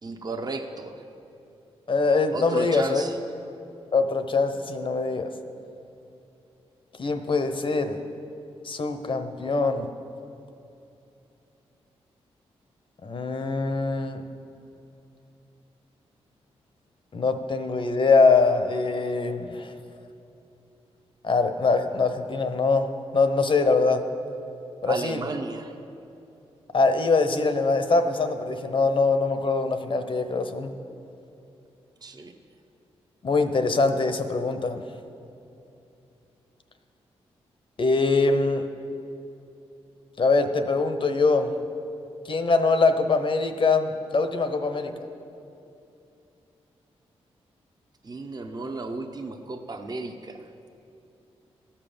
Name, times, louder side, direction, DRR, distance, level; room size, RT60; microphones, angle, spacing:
voice 1, 0.0-1.0 2.3-3.1 24.9-25.8 32.0-32.3 48.0-50.5, right 3 dB, 35° right, 4 dB, 0.9 m, -34 dB
voice 2, 1.9-3.0 3.9-5.3 7.0-8.0 8.6-9.9 13.0-14.2 17.1-19.7 21.2-24.1 24.8-25.2 26.7-30.7 33.2-34.8 37.8-38.7 40.2-41.5 42.2-44.9, left 3 dB, 50° left, 8 dB, 0.9 m, -23 dB
14.0 x 5.7 x 7.0 m, 2.7 s
cardioid pair, 60°, 11 cm